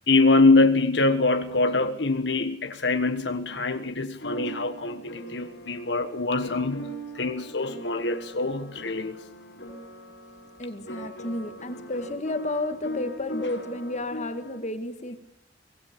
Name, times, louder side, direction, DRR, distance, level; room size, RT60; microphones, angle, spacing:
voice 1, 0.1-9.2, left 3 dB, 70° left, 1.4 m, -24 dB
sound 1, 4.1-14.6, equal, 85° left, 6.4 m, -39 dB
voice 2, 10.6-15.2, left 1 dB, 40° left, 2.0 m, -32 dB
24.5 x 18.5 x 6.9 m
head